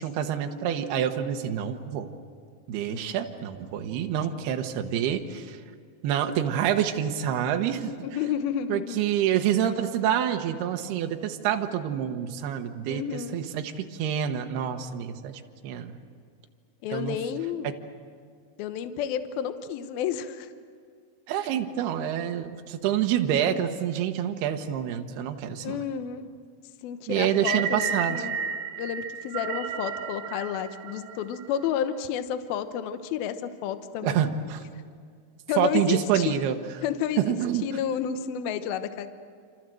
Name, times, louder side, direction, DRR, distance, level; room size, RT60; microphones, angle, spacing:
voice 1, 0.0-2.1 2.7-5.6 6.0-7.9 8.7-15.9 16.9-17.2 21.3-25.8 27.1-28.3 34.0-34.6 35.6-36.5 37.2-37.6, right 9 dB, 70° right, 5 dB, 2.6 m, -27 dB
voice 2, 8.0-9.0 12.9-13.4 16.8-17.7 18.6-20.5 25.6-26.3 26.8-28.4 28.8-34.3 35.5-36.4 36.8-37.3 37.6-39.1, left 9 dB, 80° left, 10 dB, 2.1 m, -31 dB
sound 1, 27.3-31.7, right 7 dB, 90° right, 2.2 m, -32 dB
28.0 x 27.0 x 7.7 m, 2.1 s
omnidirectional pair, 5.9 m